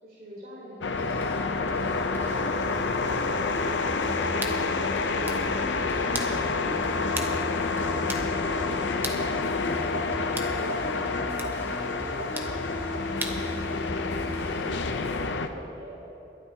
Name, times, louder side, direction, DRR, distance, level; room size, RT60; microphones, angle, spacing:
voice 1, 0.0-1.4 2.1-3.6 3.8-5.3 10.4-11.2 11.5-13.9 14.3-16.1, equal, 55° right, -7 dB, 3.6 m, -45 dB
sound 1, 0.8-15.5, left 4 dB, 85° left, 0.7 m, -28 dB
sound 2, 0.9-15.3, left 1 dB, 15° left, 1.5 m, -37 dB
sound 3, 4.4-4.6 5.1-5.5 6.1-6.3 7.2-7.4 7.6-7.7 8.1-8.3 9.0-9.3 10.4-10.6 11.4-11.5 12.4-12.5 13.2-13.4, right 2 dB, 10° right, 0.7 m, -35 dB
22.5 x 11.5 x 2.8 m, 2.7 s
head